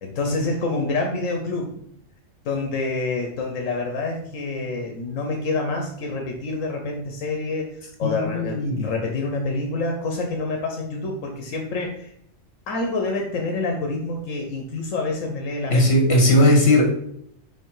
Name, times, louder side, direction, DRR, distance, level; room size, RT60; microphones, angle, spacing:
voice 1, 0.0-1.8 2.4-12.1 12.7-16.0, left 3 dB, 85° left, 2 dB, 1.3 m, -27 dB
voice 2, 8.0-8.9 15.7-17.1, left 1 dB, 55° left, 2 dB, 2.0 m, -18 dB
5.8 x 4.8 x 4.7 m, 0.72 s
omnidirectional pair, 1.3 m